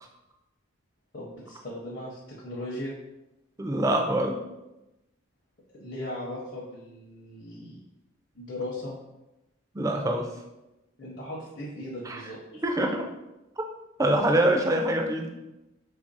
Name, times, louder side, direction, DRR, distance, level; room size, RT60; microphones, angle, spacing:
voice 1, 1.1-2.9 5.8-7.8 8.3-8.9 11.0-12.6, left 1 dB, 45° left, -6 dB, 0.6 m, -38 dB
voice 2, 3.6-4.4 9.7-10.3 12.1-12.2 12.6-13.1 14.0-15.3, right 1 dB, 15° right, 2 dB, 0.3 m, -24 dB
3.3 x 2.5 x 3.9 m, 0.97 s
head